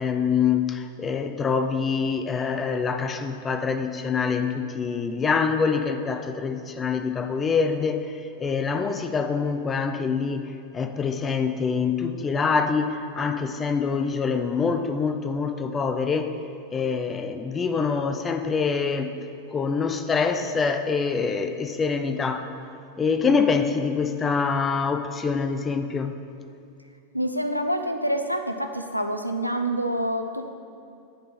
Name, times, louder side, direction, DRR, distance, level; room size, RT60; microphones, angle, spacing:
voice 1, 0.0-16.3 16.7-19.2 19.5-22.5 23.0-26.2, left 5 dB, 20° left, 8 dB, 0.4 m, -25 dB
voice 2, 27.1-30.5, right 1 dB, 90° left, 6 dB, 0.4 m, -27 dB
8.5 x 3.7 x 5.8 m, 2.5 s
figure-of-eight pair, 90°, 0 cm